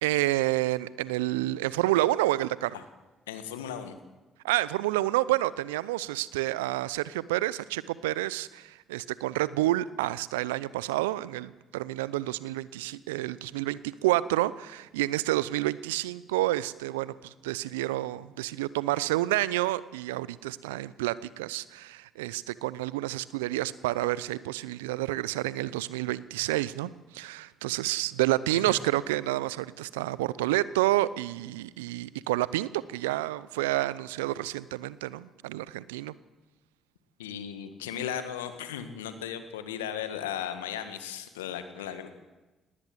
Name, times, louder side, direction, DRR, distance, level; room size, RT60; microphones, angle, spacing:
voice 1, 0.0-2.7 4.4-36.1, right 16 dB, 85° right, 19 dB, 0.6 m, -29 dB
voice 2, 3.3-3.9 28.6-28.8 37.2-42.1, left 9 dB, 85° left, 10 dB, 1.5 m, -36 dB
18.5 x 18.5 x 7.9 m, 1.2 s
hypercardioid pair, 50°, 0 cm